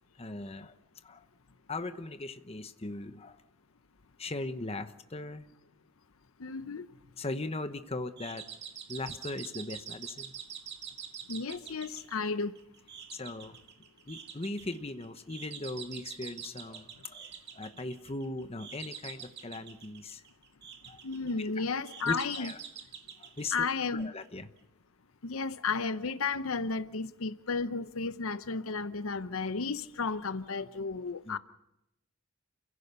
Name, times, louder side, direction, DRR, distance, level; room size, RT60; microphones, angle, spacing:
voice 1, 0.2-0.7 1.0-1.3 1.7-3.4 4.2-5.5 7.2-8.5 8.9-10.3 13.1-13.6 14.1-20.2 20.9-21.0 21.4-21.5 22.0-22.6 23.2-23.7 23.9-24.5 31.2-31.4, left 2 dB, 30° left, 1.0 m, -39 dB
voice 2, 6.4-6.9 11.3-12.5 21.0-22.5 23.5-24.1 25.2-31.4, left 4 dB, 80° left, 0.8 m, -33 dB
sound 1, 8.2-24.3, right 8 dB, 55° right, 1.9 m, -46 dB
29.0 x 16.5 x 6.8 m
head